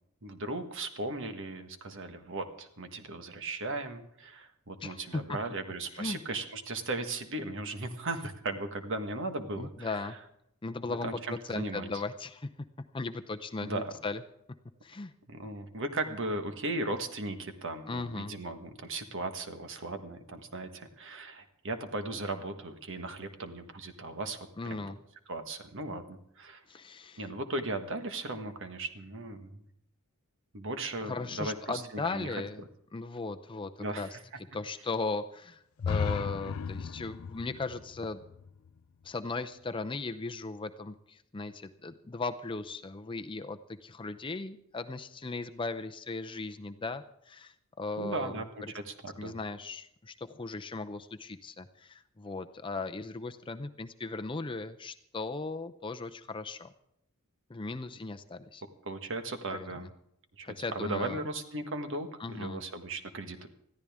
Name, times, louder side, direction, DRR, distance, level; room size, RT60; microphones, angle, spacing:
voice 1, 0.2-10.2 10.9-11.9 13.6-13.9 15.3-24.9 25.3-26.6 27.2-29.6 30.5-31.8 32.1-32.4 33.8-34.2 48.0-48.5 48.7-49.3 58.8-59.9 60.4-63.5, right 2 dB, 60° right, 7 dB, 1.5 m, -37 dB
voice 2, 4.8-5.4 5.9-6.2 9.6-10.2 10.6-12.5 12.9-14.2 14.8-15.1 17.9-18.3 24.6-25.0 26.7-27.3 31.0-32.6 32.9-34.1 34.5-38.2 39.0-48.7 49.2-56.7 57.5-58.6 59.5-59.7 60.4-61.2 62.2-62.6, left 3 dB, 20° left, 8 dB, 0.6 m, -37 dB
sound 1, 35.8-39.6, left 6 dB, 70° left, 0.4 m, -36 dB
21.0 x 14.0 x 3.6 m, 0.76 s
head